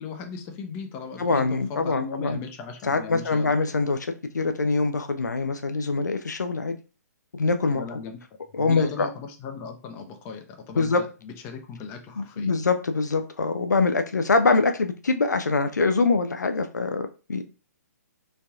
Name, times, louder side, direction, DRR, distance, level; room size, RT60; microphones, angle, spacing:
voice 1, 0.0-3.5 7.7-8.2 8.6-10.9 11.2-12.5, left 5 dB, 25° left, 0.6 m, -37 dB
voice 2, 1.2-2.4 2.8-4.0 4.3-6.8 7.3-8.0 8.5-9.1 10.8-11.0 12.2-17.4, left 3 dB, 80° left, 0.4 m, -24 dB
3.1 x 2.7 x 2.3 m
figure-of-eight pair, 125°, 9 cm